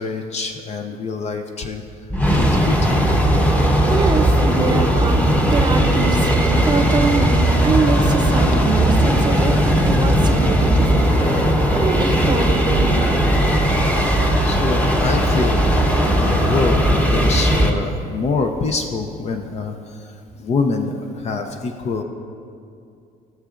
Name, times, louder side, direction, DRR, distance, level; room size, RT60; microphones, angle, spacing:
voice 1, 0.0-1.8 2.3-3.0 10.3-10.5 14.4-15.7 16.0-20.0 20.4-22.0, left 4 dB, 40° left, 5 dB, 0.6 m, -25 dB
sound 1, 2.1-17.7, right 1 dB, 10° left, 0.9 m, -17 dB
voice 2, 3.7-9.6 9.9-11.5 11.7-13.0, right 3 dB, 25° right, 5 dB, 0.7 m, -24 dB
16.0 x 6.8 x 2.5 m, 2.5 s
cardioid pair, 110°, 17 cm